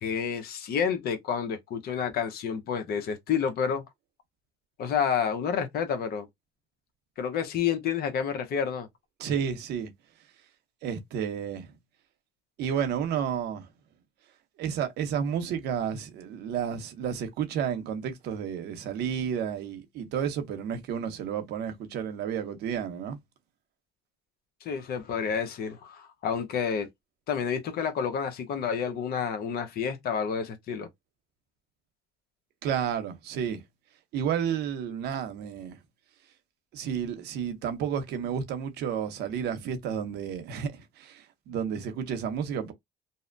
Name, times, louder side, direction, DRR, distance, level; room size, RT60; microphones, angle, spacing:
voice 1, 0.0-3.8 4.8-6.3 7.2-8.9 24.6-26.9 27.3-30.9, left 7 dB, 65° left, 0.8 m, -29 dB
voice 2, 9.2-9.9 10.8-11.7 12.6-13.6 14.6-23.2 32.6-33.6 34.1-35.8 36.7-42.7, right 8 dB, 80° right, 0.7 m, -31 dB
2.7 x 2.1 x 2.5 m
cardioid pair, 110°, 17 cm